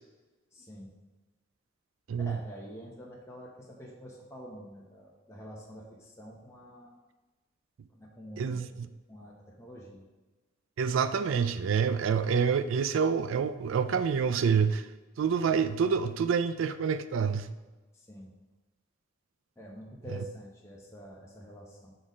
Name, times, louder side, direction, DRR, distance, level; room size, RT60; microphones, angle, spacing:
voice 1, 0.5-0.9 2.2-6.9 7.9-10.1 17.9-18.3 19.6-21.9, equal, 15° left, -3 dB, 0.9 m, -47 dB
voice 2, 8.4-8.7 10.8-14.9 15.2-17.5, right 6 dB, 70° right, 11 dB, 0.4 m, -27 dB
6.2 x 3.9 x 5.0 m, 1.2 s
head